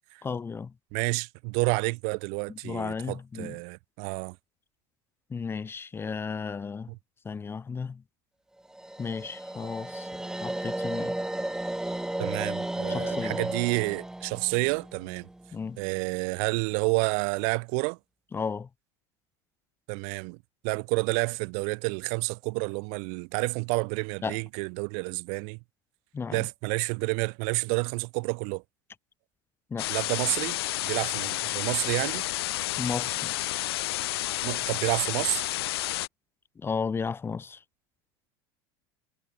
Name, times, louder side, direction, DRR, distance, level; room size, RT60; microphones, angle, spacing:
voice 1, 0.2-0.7 2.6-3.6 5.3-6.9 7.2-8.0 9.0-10.1 10.4-11.1 12.9-13.4 15.5-15.8 18.3-18.7 24.2-24.4 26.1-26.4 29.7-29.9 32.8-33.3 36.6-37.6, left 5 dB, 20° left, 1.4 m, -33 dB
voice 2, 0.9-4.4 6.9-7.0 12.2-15.3 15.8-18.0 19.9-20.4 20.6-25.6 26.3-28.6 29.9-32.3 34.4-35.5, right 40 dB or more, 65° right, 1.4 m, -29 dB
sound 1, 8.7-15.8, right 1 dB, 5° right, 6.6 m, -34 dB
sound 2, 29.8-36.1, left 17 dB, 90° left, 3.0 m, -30 dB
supercardioid pair, 130°, 13 cm